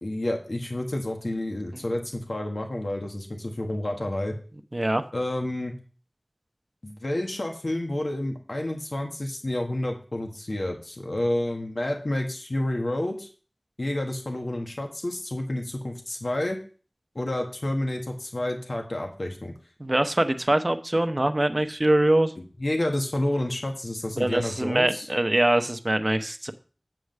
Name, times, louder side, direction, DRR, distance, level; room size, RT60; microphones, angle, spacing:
voice 1, 0.0-4.3 5.1-5.7 6.8-13.3 13.8-16.6 17.1-19.5 22.4-25.1, left 1 dB, 70° left, 3 dB, 1.3 m, -29 dB
voice 2, 4.7-5.0 19.8-22.3 24.2-26.5, right 1 dB, 40° right, 8 dB, 0.8 m, -23 dB
7.7 x 4.8 x 6.5 m, 0.39 s
wide cardioid pair, 45°, 0 cm